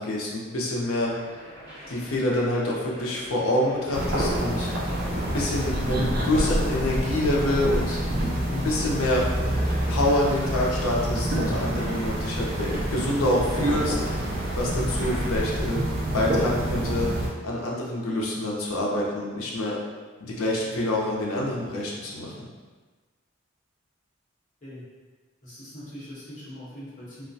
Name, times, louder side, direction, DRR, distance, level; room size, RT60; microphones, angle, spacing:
voice 1, 0.0-1.5 1.9-5.0 5.3-8.0 8.5-9.3 9.9-14.3 14.6-19.8 20.2-22.5, left 1 dB, 80° left, -3 dB, 0.5 m, -27 dB
sound 1, 0.8-15.5, equal, 60° right, 0.7 m, -42 dB
sound 2, 3.9-17.3, equal, 45° right, 0.3 m, -27 dB
voice 2, 25.4-27.3, equal, 40° left, -10 dB, 0.8 m, -41 dB
2.3 x 2.1 x 2.6 m, 1.3 s
head